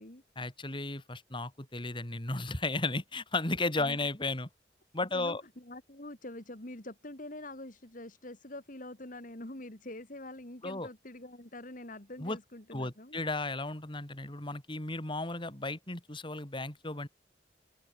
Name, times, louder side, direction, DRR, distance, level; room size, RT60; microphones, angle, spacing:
voice 1, 0.4-4.5 4.9-5.4 10.6-10.9 12.2-12.4 12.7-17.1, left 2 dB, 30° left, 3.1 m, -34 dB
voice 2, 5.1-13.2, left 1 dB, 50° left, 3.3 m, -45 dB
open air
head